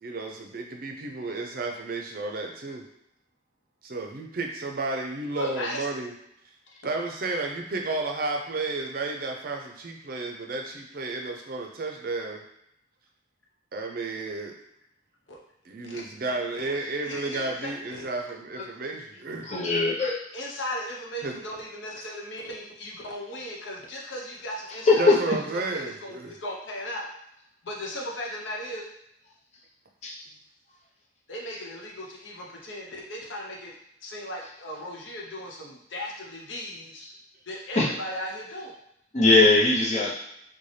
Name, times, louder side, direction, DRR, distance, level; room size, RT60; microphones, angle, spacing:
voice 1, 0.0-2.8 3.8-6.1 6.8-12.4 13.7-14.5 15.7-19.5 21.2-21.4 25.0-26.4, right 3 dB, 50° right, 2 dB, 0.5 m, -32 dB
voice 2, 5.4-5.9 6.7-6.8 15.3-15.4 15.8-16.0 16.6-16.7 17.0-18.0 20.3-25.1 25.5-27.1 27.6-28.8 31.3-33.7 34.0-37.0 37.5-38.7, left 1 dB, 90° left, -2 dB, 0.9 m, -37 dB
voice 3, 19.4-20.2 24.9-25.2 30.0-30.1 37.7-37.9 39.1-40.1, left 2 dB, 40° left, -4 dB, 0.8 m, -20 dB
4.1 x 2.2 x 3.2 m, 0.79 s
head